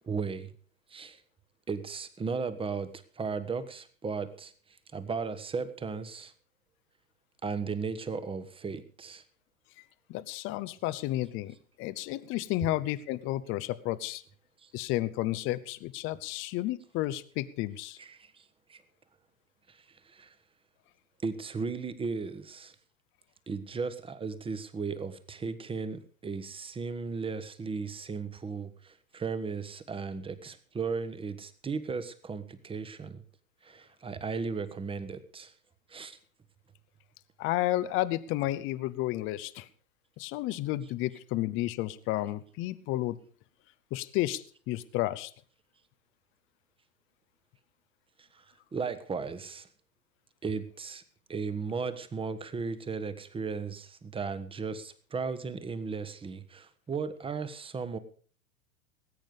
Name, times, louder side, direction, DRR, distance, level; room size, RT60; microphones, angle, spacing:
voice 1, 0.0-0.5 0.9-1.2 1.7-6.3 7.4-9.2 14.6-14.7 18.0-18.8 19.7-20.3 21.2-22.7 23.5-33.2 33.6-35.5 35.9-36.2 48.2-48.4 48.7-49.7 50.4-51.0 51.3-58.0, right 5 dB, 15° right, 12 dB, 1.3 m, -36 dB
voice 2, 10.1-14.2 14.7-18.0 37.4-39.7 40.2-43.2 43.9-45.3, left 16 dB, 30° left, 15 dB, 0.8 m, -32 dB
19.5 x 9.0 x 5.1 m, 0.43 s
figure-of-eight pair, 95°, 41 cm